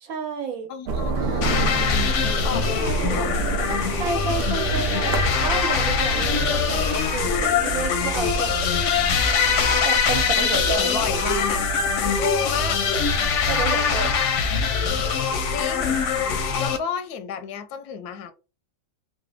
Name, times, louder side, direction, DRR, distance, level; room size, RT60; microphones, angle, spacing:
voice 1, 0.0-0.7 2.8-3.3 3.9-5.1 5.4-8.7 9.8-10.9 13.5-14.1, right 5 dB, 70° right, 1.2 m, -30 dB
voice 2, 0.7-3.5 10.4-11.6 12.0-12.8 15.5-16.0 16.3-18.3, left 7 dB, 85° left, 1.1 m, -32 dB
sound 1, 0.9-16.7, right 3 dB, 90° right, 0.5 m, -30 dB
sound 2, 1.4-16.8, left 6 dB, 65° left, 0.8 m, -23 dB
3.2 x 2.0 x 3.4 m
omnidirectional pair, 1.6 m